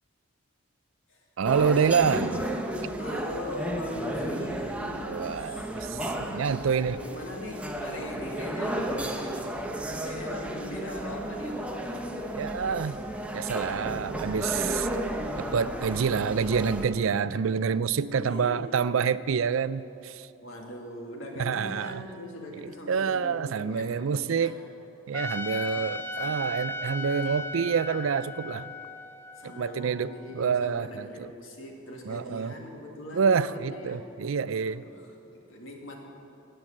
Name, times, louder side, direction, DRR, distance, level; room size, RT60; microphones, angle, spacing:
sound 1, 1.4-16.9, right 1 dB, 5° right, 0.8 m, -33 dB
voice 1, 1.4-2.5 5.0-7.0 12.3-13.0 13.3-14.9 15.4-20.3 21.4-22.0 22.9-24.6 25.1-28.7 29.4-31.3 32.1-32.5 33.1-34.8, right 6 dB, 85° right, 16 dB, 0.4 m, -27 dB
voice 2, 3.0-5.8 6.5-9.4 9.7-12.0 18.1-18.7 20.4-24.5 25.7-26.0 29.3-34.1 34.6-36.0, left 1 dB, 85° left, 1 dB, 2.1 m, -41 dB
Trumpet, 25.1-30.3, left 2 dB, 10° left, 0.5 m, -37 dB
15.5 x 9.0 x 7.4 m, 2.9 s
head